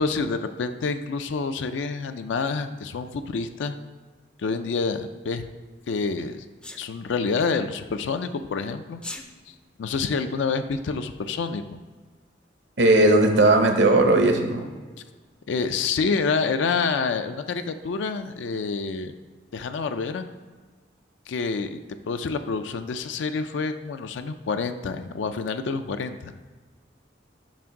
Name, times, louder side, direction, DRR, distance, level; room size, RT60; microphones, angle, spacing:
voice 1, 0.0-3.8 4.4-5.5 5.9-6.4 6.8-9.0 9.8-11.8 15.5-19.1 19.5-20.3 21.3-21.8 22.1-26.3, left 4 dB, 85° left, 9 dB, 0.4 m, -27 dB
Sneeze, 6.6-6.8 8.9-9.3, left 2 dB, 5° left, 0.3 m, -36 dB
voice 2, 12.8-14.7, right 2 dB, 70° right, 4 dB, 0.8 m, -17 dB
7.3 x 2.6 x 5.8 m, 1.4 s
head